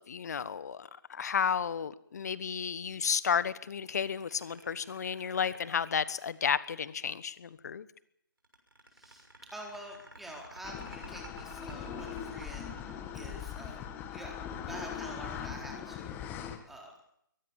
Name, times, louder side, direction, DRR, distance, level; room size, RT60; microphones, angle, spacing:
voice 1, 0.0-7.9, left 7 dB, 50° left, 17 dB, 1.3 m, -32 dB
sound 1, 3.8-7.0 8.4-13.9, right 2 dB, 80° right, 6.4 m, -51 dB
voice 2, 8.9-14.3 14.7-16.9, right 1 dB, ahead, -1 dB, 4.2 m, -47 dB
sound 2, 10.6-16.6, left 8 dB, 15° left, 2.0 m, -40 dB
23.0 x 19.0 x 7.3 m, 0.73 s
figure-of-eight pair, 140°, 11 cm